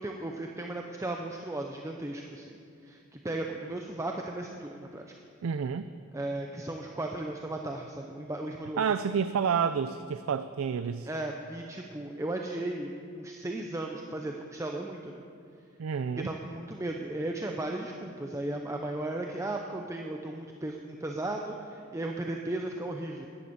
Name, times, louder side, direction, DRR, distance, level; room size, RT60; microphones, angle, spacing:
voice 1, 0.0-2.6 2.8-5.1 6.1-8.8 11.1-15.2 16.2-23.3, right 2 dB, 15° right, 2 dB, 0.6 m, -36 dB
voice 2, 5.4-5.8 8.8-11.1 15.8-16.3, right 6 dB, 75° right, 11 dB, 0.4 m, -29 dB
10.5 x 10.5 x 7.0 m, 2.4 s
head